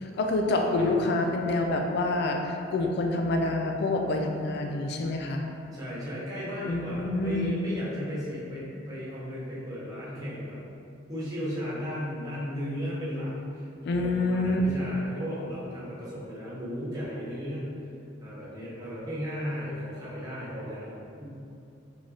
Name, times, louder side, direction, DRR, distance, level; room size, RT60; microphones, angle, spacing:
voice 1, 0.0-5.4 6.7-7.5 13.9-14.6, left 2 dB, 60° left, 2 dB, 0.3 m, -27 dB
voice 2, 5.7-10.6 11.1-17.7 18.2-21.3, equal, 20° right, -9 dB, 1.1 m, -35 dB
4.6 x 2.8 x 2.9 m, 2.5 s
head